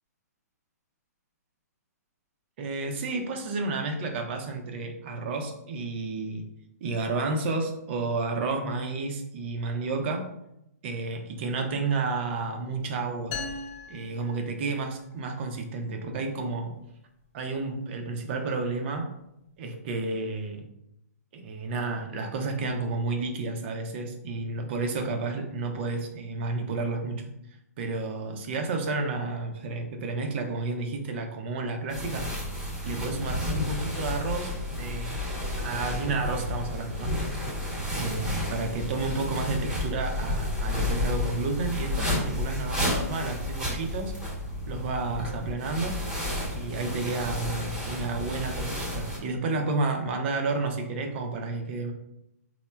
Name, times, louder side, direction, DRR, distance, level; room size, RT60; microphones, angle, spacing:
voice 1, 2.6-6.5 6.8-10.3 10.8-13.3 13.9-16.7 17.3-19.1 19.6-20.6 21.3-27.3 27.8-32.3 32.8-35.2 35.6-37.1 37.9-44.1 44.7-46.0 46.5-51.9, right 3 dB, 40° right, 4 dB, 0.5 m, -31 dB
sound 1, 13.3-15.1, left 4 dB, 35° left, 0.7 m, -39 dB
sound 2, 31.9-49.2, left 1 dB, 5° right, 0.9 m, -31 dB
4.2 x 2.1 x 2.2 m, 0.83 s
hypercardioid pair, 150°, 9 cm